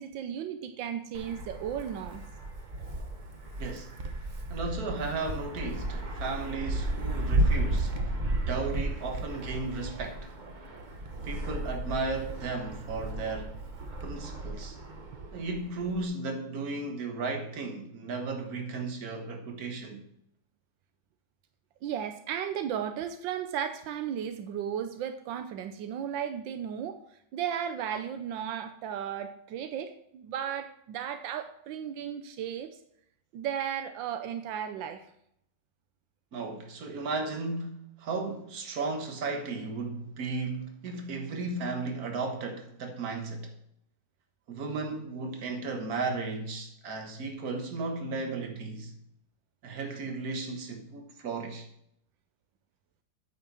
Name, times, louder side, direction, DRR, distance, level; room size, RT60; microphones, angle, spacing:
voice 1, 0.0-2.2 13.8-13.9 21.8-27.0 27.3-32.7 33.3-35.0, right 9 dB, 85° right, 1.4 m, -35 dB
Wind, 1.1-16.0, right 1 dB, 35° right, 0.8 m, -33 dB
voice 2, 3.6-3.9 4.5-8.2 8.5-10.3 11.2-13.6 14.0-14.8 15.3-20.1 36.3-43.5 44.5-48.9 49.6-51.7, right 3 dB, 55° right, 1.8 m, -35 dB
8.8 x 5.6 x 6.1 m
omnidirectional pair, 2.0 m